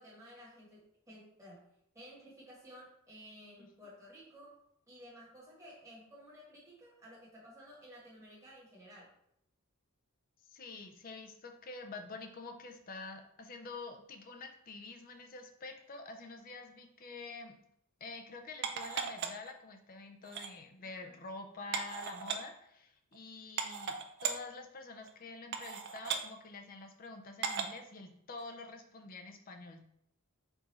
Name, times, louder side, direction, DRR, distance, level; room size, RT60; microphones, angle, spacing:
voice 1, 0.0-1.6 1.9-4.6 4.9-9.1 21.0-21.2, equal, 15° right, -5 dB, 1.4 m, -54 dB
voice 2, 10.5-17.6 18.0-29.9, left 3 dB, 40° left, 5 dB, 0.5 m, -47 dB
sound 1, 18.6-19.5 20.2-20.5 21.7-22.4 23.1-23.2 23.6-24.4 25.0-25.1 25.5-26.2 27.4-27.8 28.4-28.5, right 6 dB, 50° right, 0.4 m, -36 dB
4.6 x 2.6 x 4.2 m, 0.75 s
head